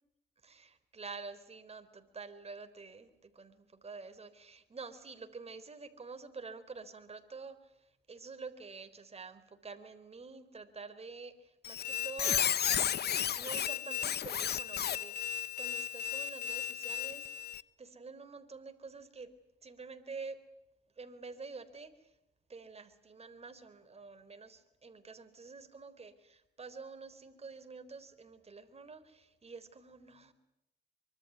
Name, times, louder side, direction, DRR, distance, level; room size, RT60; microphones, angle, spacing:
voice 1, 0.4-12.6 13.4-19.3 19.6-20.4 21.0-22.1 22.5-30.3, right 4 dB, 30° right, 9 dB, 3.9 m, -48 dB
Squeak, 11.6-17.6, left 9 dB, 55° left, 1.1 m, -34 dB
25.0 x 24.5 x 9.4 m, 0.88 s
cardioid pair, 90°, 20 cm